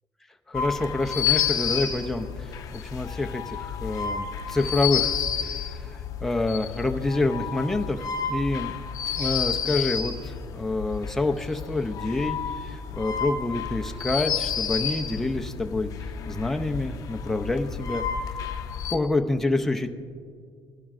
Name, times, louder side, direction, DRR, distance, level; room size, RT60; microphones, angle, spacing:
sound 1, 0.5-18.9, left 7 dB, 45° left, 0.6 m, -30 dB
voice 1, 0.5-5.1 5.4-8.7 9.2-18.0 18.9-19.9, left 2 dB, 5° left, 4 dB, 0.5 m, -27 dB
19.5 x 12.0 x 2.5 m, 2.2 s
cardioid pair, 165°, 8 cm